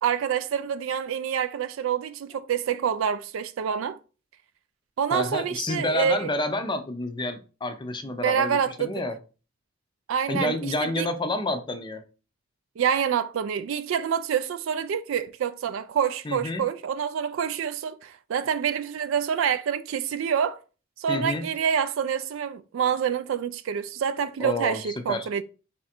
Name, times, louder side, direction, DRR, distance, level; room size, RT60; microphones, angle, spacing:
voice 1, 0.0-4.0 5.0-6.3 8.2-9.0 10.1-11.1 12.8-20.6 21.0-25.4, right 8 dB, 70° right, 0.3 m, -27 dB
voice 2, 5.1-9.2 10.3-12.0 16.2-16.6 21.1-21.5 24.4-24.8 25.1-25.3, left 2 dB, 25° left, 0.5 m, -29 dB
4.2 x 2.5 x 4.2 m
head